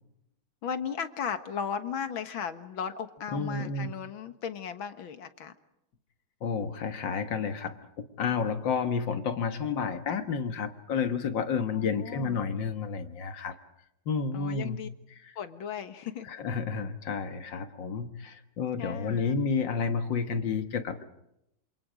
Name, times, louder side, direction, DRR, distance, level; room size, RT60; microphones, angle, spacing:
voice 1, 0.6-5.5 11.7-12.4 14.3-14.9 15.4-16.3 18.8-19.4, left 7 dB, 85° left, 10 dB, 2.2 m, -36 dB
voice 2, 3.3-3.9 6.4-13.6 14.1-14.8 16.3-21.0, left 5 dB, 70° left, 9 dB, 2.2 m, -30 dB
27.5 x 27.5 x 5.1 m, 0.82 s
omnidirectional pair, 2.1 m